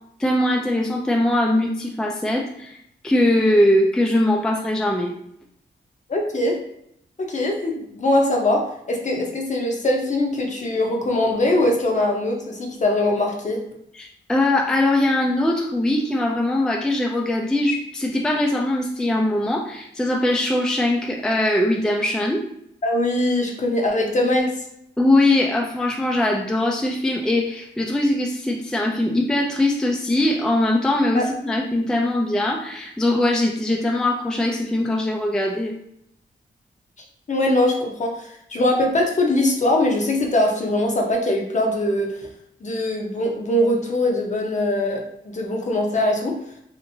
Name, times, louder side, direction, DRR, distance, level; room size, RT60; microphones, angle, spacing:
voice 1, 0.2-2.8 3.0-5.1 13.9-22.4 25.0-35.7, left 1 dB, 5° left, 0 dB, 0.3 m, -21 dB
voice 2, 6.1-6.6 7.2-8.6 8.9-13.6 22.8-24.5 31.1-31.3 37.3-42.1 42.6-45.0 45.3-46.4, left 1 dB, 40° left, 0 dB, 0.7 m, -21 dB
2.8 x 2.5 x 2.7 m, 0.74 s
cardioid pair, 80°, 19 cm